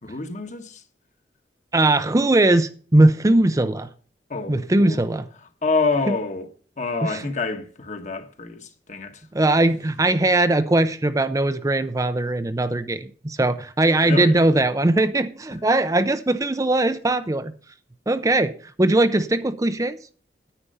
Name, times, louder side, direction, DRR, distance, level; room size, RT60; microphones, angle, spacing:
voice 1, 0.0-0.8 4.3-5.0 5.6-6.5 6.8-9.2 14.0-14.4, left 3 dB, 45° left, 1.3 m, -27 dB
voice 2, 1.7-3.9 4.5-5.2 6.1-6.2 7.0-7.2 9.3-17.5 18.1-20.0, right 2 dB, 20° right, 0.5 m, -20 dB
9.9 x 9.1 x 5.4 m
head